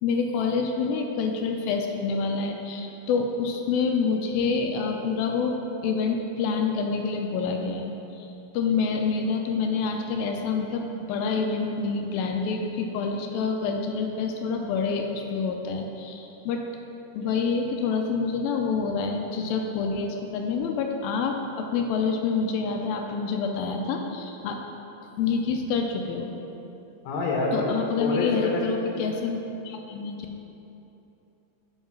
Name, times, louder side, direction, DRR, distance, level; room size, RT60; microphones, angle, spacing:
voice 1, 0.0-8.3 8.5-16.6 17.1-24.6 25.2-26.3 27.5-30.3, left 5 dB, 85° left, 3 dB, 2.3 m, -27 dB
voice 2, 27.0-27.7 28.0-28.6 28.9-29.1, left 3 dB, 60° left, -2 dB, 2.2 m, -26 dB
9.2 x 5.6 x 5.9 m, 2.9 s
omnidirectional pair, 4.3 m